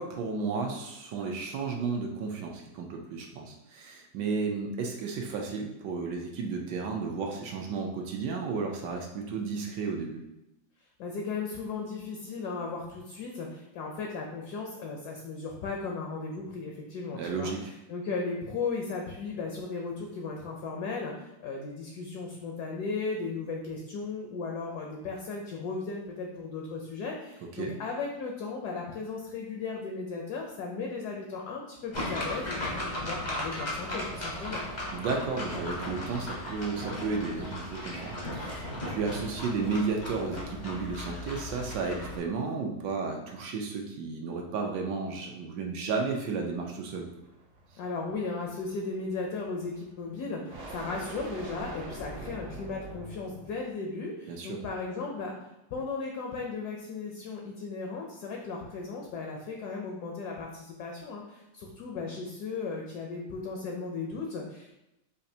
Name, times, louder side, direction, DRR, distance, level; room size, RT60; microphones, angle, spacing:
voice 1, 0.0-10.2 17.1-17.7 27.6-27.8 34.9-47.1 54.3-54.6, right 4 dB, 75° right, 2 dB, 1.1 m, -33 dB
voice 2, 11.0-17.5 17.9-34.6 47.8-55.3 55.7-64.7, left 4 dB, 70° left, 0 dB, 1.0 m, -36 dB
sound 1, 31.9-42.2, left 1 dB, 45° left, 0.5 m, -36 dB
sound 2, 46.6-53.7, right 1 dB, 55° right, 0.6 m, -44 dB
5.2 x 2.5 x 2.7 m, 0.93 s
omnidirectional pair, 2.0 m